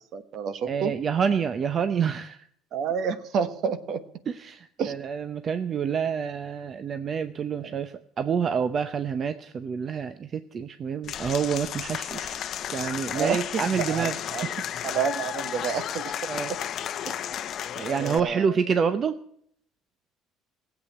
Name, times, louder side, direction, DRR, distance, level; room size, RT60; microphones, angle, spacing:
voice 1, 0.1-0.9 2.7-4.0 4.8-4.9 7.6-7.7 13.1-14.5 14.8-16.1 16.5-16.6 17.0-17.5 17.8-18.5, right 6 dB, 60° right, 12 dB, 1.4 m, -29 dB
voice 2, 0.7-2.5 4.3-12.4 12.7-14.6 16.3-16.5 17.0-17.1 17.8-19.2, right 6 dB, 40° right, 11 dB, 0.7 m, -28 dB
Applause / Crowd, 11.0-18.2, left 10 dB, 50° left, 0.7 m, -33 dB
16.5 x 8.3 x 8.6 m, 0.66 s
cardioid pair, 105°, 0 cm